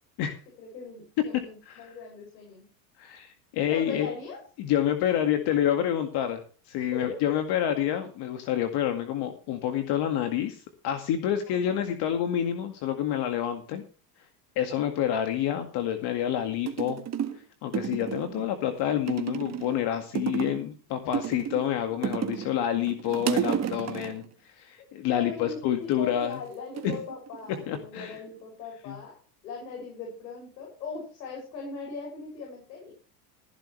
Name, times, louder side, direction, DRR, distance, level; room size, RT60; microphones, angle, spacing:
voice 1, 0.6-2.6 3.7-4.4 6.8-7.2 11.5-11.8 21.0-21.1 25.1-32.9, left 5 dB, 85° left, 0 dB, 6.8 m, -40 dB
voice 2, 3.0-4.1 4.6-6.4 6.7-13.8 14.6-17.0 17.6-24.2 24.6-26.4 26.8-26.9 27.7-28.2 28.9-29.0, left 10 dB, 50° left, 7 dB, 2.1 m, -28 dB
sound 1, 16.2-16.3 16.7-17.4 17.7-18.5 19.1-19.8 20.1-20.7 21.1-22.5 22.8-24.2 25.8-26.3 26.8-27.8 28.1-28.6, right 9 dB, 30° right, 1.7 m, -32 dB
15.0 x 11.5 x 3.3 m, 0.38 s
supercardioid pair, 110°, 50 cm